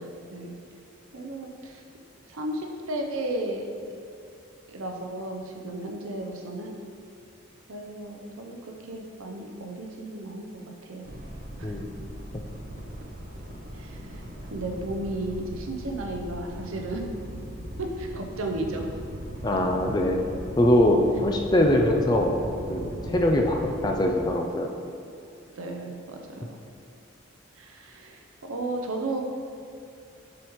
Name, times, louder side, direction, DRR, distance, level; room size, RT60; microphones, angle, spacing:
voice 1, 1.1-1.8 2.3-3.7 4.7-6.8 7.7-11.1 11.6-12.0 13.7-17.1 17.8-18.9 25.6-26.6 27.6-29.2, right 2 dB, 80° right, 2 dB, 0.7 m, -34 dB
sound 1, 11.0-24.3, right 1 dB, 45° right, 0.7 m, -39 dB
voice 2, 11.6-11.9 19.4-20.3 20.6-24.7, left 1 dB, 20° left, 2 dB, 0.3 m, -23 dB
7.1 x 4.9 x 3.1 m, 2.5 s
head